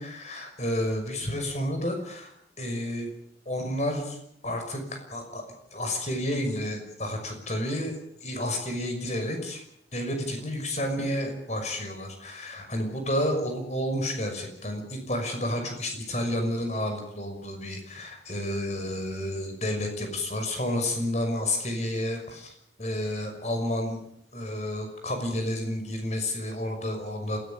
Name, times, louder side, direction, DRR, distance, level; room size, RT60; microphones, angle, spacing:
voice 1, 0.0-2.3 2.6-3.1 3.5-4.2 4.4-5.4 5.7-9.6 9.9-24.0 24.3-27.4, left 1 dB, 40° left, 5 dB, 6.0 m, -30 dB
28.5 x 17.0 x 7.1 m, 0.73 s
head